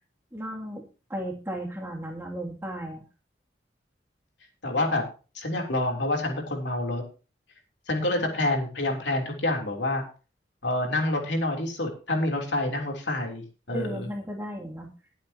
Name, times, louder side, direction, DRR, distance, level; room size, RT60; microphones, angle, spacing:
voice 1, 0.3-3.0 13.7-14.9, right 1 dB, 15° right, -1 dB, 2.5 m, -35 dB
voice 2, 4.6-5.0 5.3-7.0 7.9-10.0 10.6-14.0, left 1 dB, 75° left, 2 dB, 3.3 m, -27 dB
20.0 x 8.4 x 2.9 m, 0.34 s
head